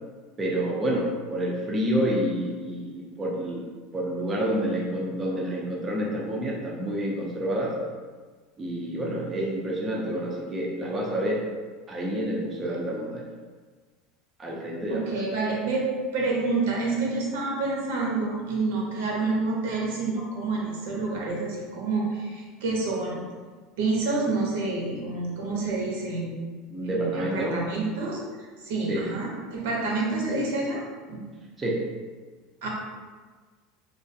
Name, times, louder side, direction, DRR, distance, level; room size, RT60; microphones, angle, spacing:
voice 1, 0.4-3.6 3.9-7.8 8.6-11.4 11.9-13.2 14.4-15.1 26.7-27.6 28.9-29.1 31.6-31.8, right 1 dB, 20° right, -3 dB, 0.3 m, -28 dB
voice 2, 14.9-15.9 16.1-23.2 23.8-26.3 26.8-28.2 28.6-30.8 31.1-31.2 32.6-32.7, right 3 dB, 80° right, -3 dB, 0.7 m, -28 dB
2.3 x 2.3 x 2.5 m, 1.4 s
supercardioid pair, 155°, 0 cm